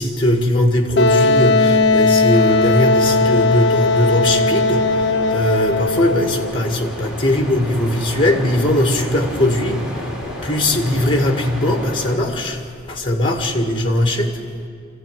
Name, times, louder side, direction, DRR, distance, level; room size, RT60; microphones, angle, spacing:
voice 1, 0.0-4.8 5.3-9.8 10.4-12.6 12.9-14.4, left 1 dB, 25° left, 4 dB, 2.0 m, -19 dB
Wind instrument woodwind instrument, 1.0-6.5, left 3 dB, 65° left, 0.9 m, -17 dB
sound 1, 2.3-12.2, equal, 5° right, 4.1 m, -32 dB
24.0 x 15.5 x 9.3 m, 2.4 s
head